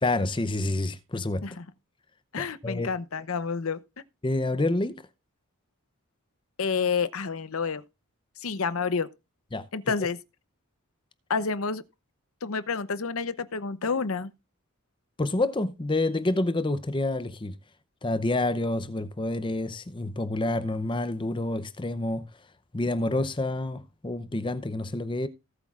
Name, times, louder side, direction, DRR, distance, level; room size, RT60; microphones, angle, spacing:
voice 1, 0.0-1.4 2.4-2.9 4.2-5.0 9.5-9.7 15.2-17.5 18.0-22.2 22.7-25.3, left 2 dB, 20° left, 0.6 m, -28 dB
voice 2, 2.3-3.8 6.6-7.8 8.4-9.1 9.7-10.2 11.3-11.8 12.4-14.3, left 5 dB, 70° left, 0.7 m, -29 dB
18.0 x 8.1 x 2.4 m
head